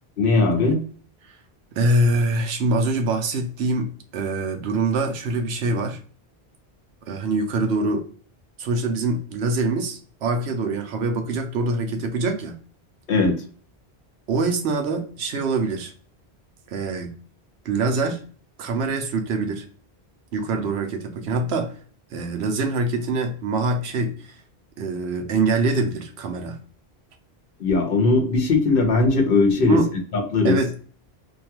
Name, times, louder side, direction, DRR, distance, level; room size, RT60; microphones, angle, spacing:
voice 1, 0.2-0.8 13.1-13.4 27.6-29.8 30.1-30.6, left 3 dB, 60° left, 4 dB, 0.9 m, -19 dB
voice 2, 1.7-6.0 7.1-8.0 8.6-12.6 14.3-15.9 16.7-17.1 17.6-18.2 18.6-19.6 20.3-21.7 22.1-24.4 24.8-26.6 29.6-29.9 30.4-30.7, right 3 dB, 80° right, 4 dB, 0.9 m, -24 dB
2.7 x 2.3 x 2.8 m, 0.44 s
omnidirectional pair, 1.1 m